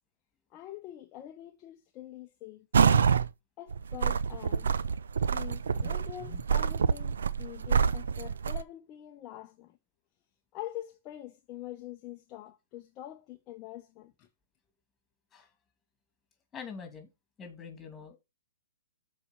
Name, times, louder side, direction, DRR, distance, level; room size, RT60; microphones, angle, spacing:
voice 1, 0.5-2.7 3.6-4.7 5.2-9.8 10.5-14.3, left 14 dB, 30° left, 0.7 m, -45 dB
sound 1, 2.7-3.3 3.7-8.6, right 6 dB, 70° right, 0.5 m, -26 dB
voice 2, 16.5-17.1 17.4-18.2, left 5 dB, 15° left, 2.4 m, -44 dB
7.1 x 4.4 x 5.9 m
hypercardioid pair, 125°, 0 cm